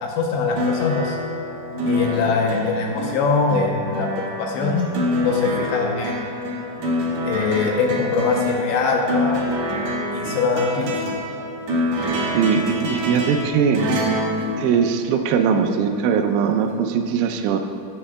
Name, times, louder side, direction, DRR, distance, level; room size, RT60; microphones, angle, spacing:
voice 1, 0.0-1.2 1.8-4.1 4.4-6.3 7.2-9.4 10.1-11.0, left 4 dB, 80° left, 0 dB, 2.7 m, -22 dB
sound 1, 0.5-15.5 16.7-16.8, left 1 dB, 65° right, 1.8 m, -26 dB
voice 2, 12.3-13.8 14.6-17.6, right 7 dB, 85° right, 5 dB, 3.0 m, -20 dB
17.0 x 9.7 x 2.2 m, 2.8 s
omnidirectional pair, 5.5 m